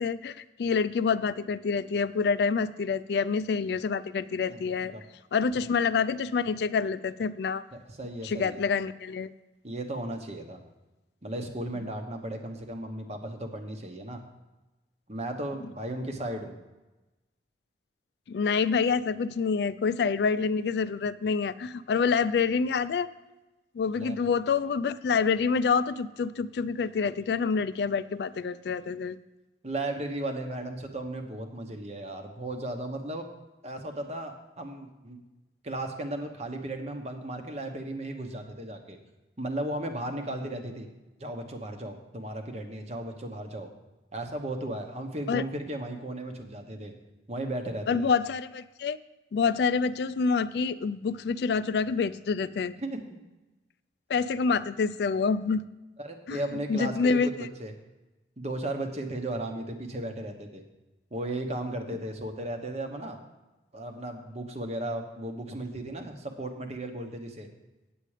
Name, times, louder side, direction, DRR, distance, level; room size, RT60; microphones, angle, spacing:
voice 1, 0.0-4.9 5.3-7.6 8.2-9.3 18.3-23.1 23.7-29.2 45.3-45.4 47.9-49.0 49.3-52.7 54.1-55.6 56.3-56.4 56.7-57.5, left 5 dB, 65° left, 14 dB, 0.3 m, -27 dB
voice 2, 4.5-5.0 5.5-5.7 7.7-8.6 9.6-10.6 11.2-14.2 15.1-16.6 24.0-24.2 29.6-33.3 33.6-35.2 35.6-39.0 39.4-40.9 41.2-43.7 44.1-46.9 47.3-48.1 52.8-53.0 56.0-57.7 58.4-60.6 61.1-63.2 63.7-67.5, right 1 dB, 35° right, 5 dB, 1.0 m, -35 dB
8.6 x 8.3 x 4.9 m, 1.1 s
head